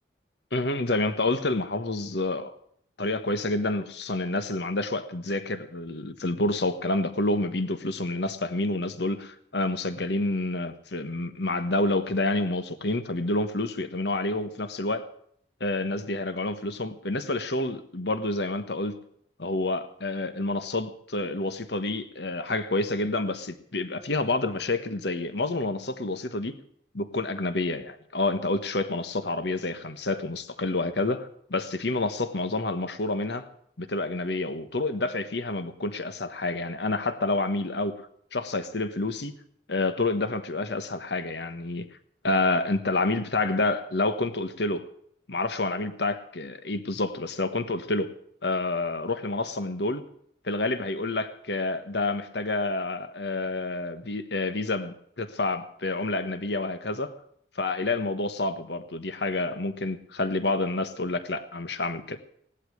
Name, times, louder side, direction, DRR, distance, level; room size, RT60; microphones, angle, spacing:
voice 1, 0.5-2.5 3.0-15.1 15.6-18.9 19.4-26.5 26.9-33.5 33.8-39.3 39.7-41.9 42.2-44.9 45.3-48.1 48.4-50.0 50.4-57.1 57.5-62.2, left 2 dB, 70° left, 1.3 m, -28 dB
17.5 x 11.5 x 6.5 m
head